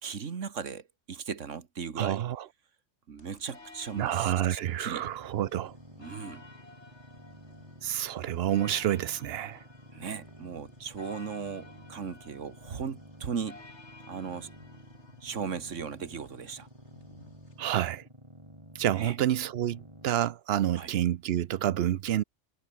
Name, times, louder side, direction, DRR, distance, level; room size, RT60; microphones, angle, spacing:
voice 1, 0.0-2.2 3.1-5.1 6.0-6.4 9.9-13.6 14.1-14.5 15.2-16.7 18.9-19.2 20.8-20.9, right 6 dB, 80° right, 1.9 m, -37 dB
voice 2, 2.0-2.4 4.0-5.7 7.8-9.6 17.6-18.0 18.7-22.2, right 11 dB, 60° right, 0.8 m, -28 dB
sound 1, 3.2-18.0, left 3 dB, 65° left, 3.6 m, -53 dB
sound 2, 5.0-20.1, right 1 dB, 25° right, 8.2 m, -52 dB
omnidirectional pair, 1.3 m